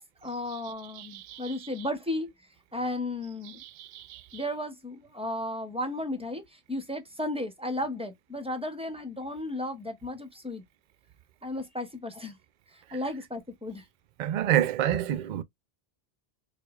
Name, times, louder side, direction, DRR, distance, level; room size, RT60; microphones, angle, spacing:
voice 1, 0.0-2.3 2.7-3.6 4.3-10.6 11.4-12.4 12.7-13.8, left 1 dB, 5° right, 0.7 m, -34 dB
voice 2, 1.0-1.5 3.6-4.4 14.2-15.4, right 11 dB, 55° right, 0.5 m, -29 dB
4.6 x 2.3 x 2.3 m
omnidirectional pair, 1.1 m